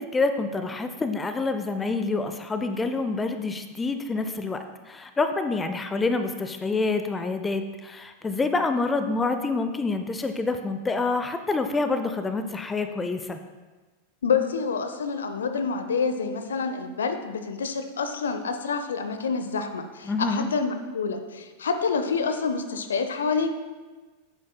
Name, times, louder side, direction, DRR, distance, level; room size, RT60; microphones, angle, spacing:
voice 1, 0.0-13.4 20.1-20.5, left 3 dB, 15° left, 8 dB, 0.5 m, -27 dB
voice 2, 14.2-23.5, left 5 dB, 65° left, 8 dB, 0.6 m, -27 dB
9.8 x 8.6 x 2.2 m, 1.3 s
figure-of-eight pair, 90°, 0 cm